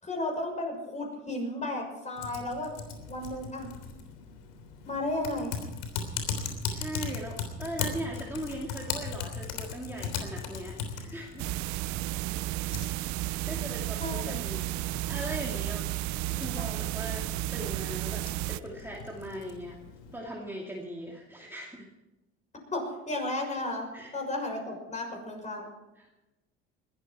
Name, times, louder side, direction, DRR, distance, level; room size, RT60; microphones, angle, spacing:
voice 1, 0.0-2.7 3.1-3.7 4.9-5.5 14.0-14.4 16.5-16.8 22.7-25.6, left 1 dB, 20° left, 1 dB, 6.5 m, -34 dB
Typing, 2.2-20.2, left 6 dB, 80° left, 3.4 m, -39 dB
voice 2, 6.4-11.5 13.2-15.9 16.3-17.3 17.5-19.7 20.1-21.9 23.9-24.1 26.0-26.1, right 1 dB, 5° right, -2 dB, 2.4 m, -40 dB
sound 1, 11.4-18.6, right 17 dB, 65° right, 0.5 m, -33 dB
20.5 x 14.0 x 4.6 m, 1.0 s
supercardioid pair, 105°, 31 cm